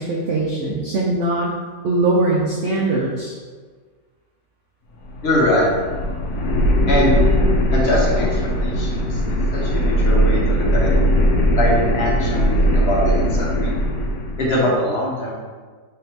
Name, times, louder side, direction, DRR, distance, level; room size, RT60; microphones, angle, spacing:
voice 1, 0.0-1.5 1.8-3.3, right 2 dB, 70° right, -3 dB, 0.7 m, -21 dB
sound 1, 4.9-14.5, equal, 70° left, 1.1 m, -19 dB
voice 2, 5.2-5.7 6.9-7.2 7.7-10.9 11.6-13.8 14.4-15.3, left 1 dB, 50° left, -4 dB, 0.9 m, -22 dB
3.8 x 3.5 x 2.8 m, 1.5 s
omnidirectional pair, 1.8 m